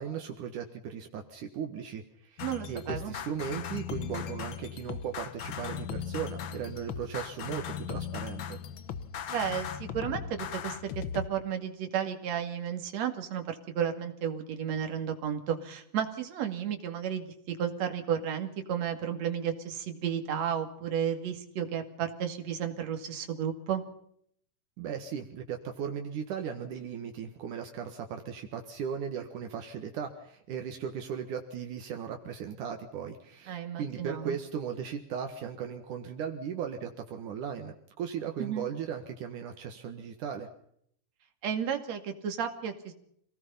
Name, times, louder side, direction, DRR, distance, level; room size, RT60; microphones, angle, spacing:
voice 1, 0.0-8.6 24.8-40.5, right 7 dB, 75° right, 4 dB, 3.1 m, -37 dB
sound 1, 2.4-11.3, left 8 dB, 60° left, 1.3 m, -38 dB
voice 2, 2.4-3.1 9.3-23.8 33.5-34.4 38.4-38.7 41.4-42.9, right 8 dB, 55° right, 6 dB, 3.4 m, -33 dB
27.0 x 18.5 x 5.7 m, 0.69 s
omnidirectional pair, 3.7 m